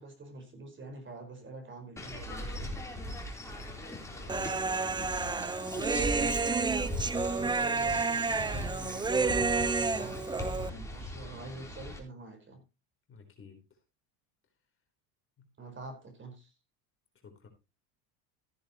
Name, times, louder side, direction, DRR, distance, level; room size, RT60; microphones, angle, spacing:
voice 1, 0.0-2.8 7.3-12.6 15.6-16.5, right 2 dB, 30° right, 4.8 m, -46 dB
sound 1, 2.0-12.0, equal, 5° left, 3.8 m, -39 dB
voice 2, 3.8-6.9 13.1-13.8 15.4-15.5 17.2-17.5, left 6 dB, 30° left, 4.0 m, -53 dB
Human voice, 4.3-10.7, right 4 dB, 10° right, 0.6 m, -30 dB
15.0 x 10.0 x 3.0 m
supercardioid pair, 110°, 41 cm